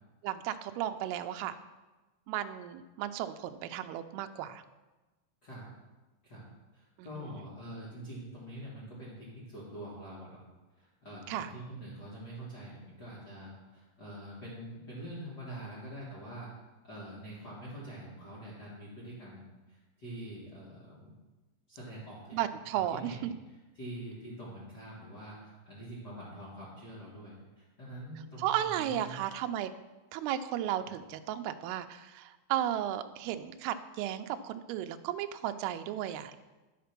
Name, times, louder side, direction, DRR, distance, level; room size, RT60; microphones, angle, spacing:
voice 1, 0.2-1.6 2.3-4.6 7.0-7.4 11.3-11.5 22.3-23.3 28.4-29.7 30.1-36.4, right 11 dB, 85° right, 9 dB, 2.4 m, -34 dB
voice 2, 6.7-10.4 10.8-16.5 16.8-21.1 21.7-22.4 22.7-23.3 23.7-29.1 30.8-30.9, right 1 dB, 55° left, -8 dB, 1.1 m, -45 dB
10.5 x 5.1 x 5.9 m, 1.2 s
omnidirectional pair, 4.9 m